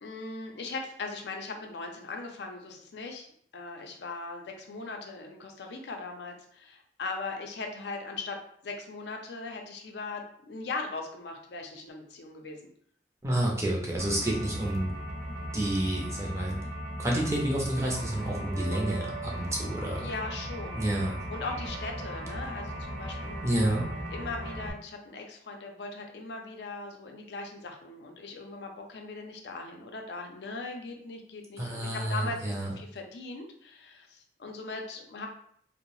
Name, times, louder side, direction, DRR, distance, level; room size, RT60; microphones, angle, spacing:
voice 1, 0.0-3.3 3.5-12.7 20.0-20.8 21.3-23.5 24.1-35.3, left 3 dB, 75° left, 3 dB, 0.4 m, -39 dB
voice 2, 13.2-14.9 15.5-16.6 17.0-20.1 20.8-21.2 23.4-23.9 31.6-32.7, right 1 dB, 15° right, -2 dB, 0.5 m, -29 dB
sound 1, 14.0-24.7, equal, 70° right, 0.6 m, -37 dB
2.6 x 2.0 x 3.0 m, 0.64 s
head